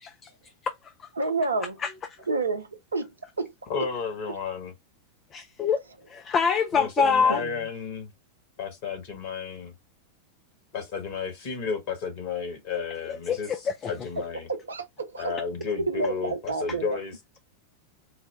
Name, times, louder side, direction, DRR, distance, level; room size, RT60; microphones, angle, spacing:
voice 1, 1.2-1.8 2.3-3.1 3.4-3.5 7.3-7.6 14.2-15.3 15.9-17.0, right 3 dB, 75° right, 0.6 m, -29 dB
voice 2, 3.7-4.7 6.7-8.1 8.6-9.7 10.7-13.5 13.9-14.5 15.2-17.1, left 5 dB, 50° left, 1.6 m, -32 dB
voice 3, 5.3-5.8 6.1-7.4 13.3-13.7, left 6 dB, 25° left, 0.5 m, -24 dB
4.1 x 2.2 x 3.5 m
figure-of-eight pair, 90°, 0 cm